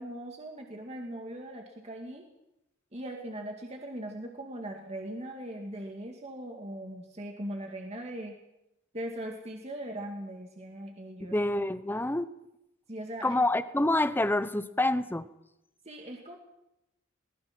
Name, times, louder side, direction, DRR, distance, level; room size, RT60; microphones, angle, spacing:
voice 1, 0.0-2.3 2.9-8.4 8.9-11.4 12.9-13.4 15.9-16.4, right 1 dB, 35° right, 2 dB, 2.2 m, -40 dB
voice 2, 11.2-12.3 13.2-15.3, left 1 dB, 10° left, 13 dB, 0.8 m, -27 dB
22.0 x 19.5 x 6.1 m, 0.86 s
head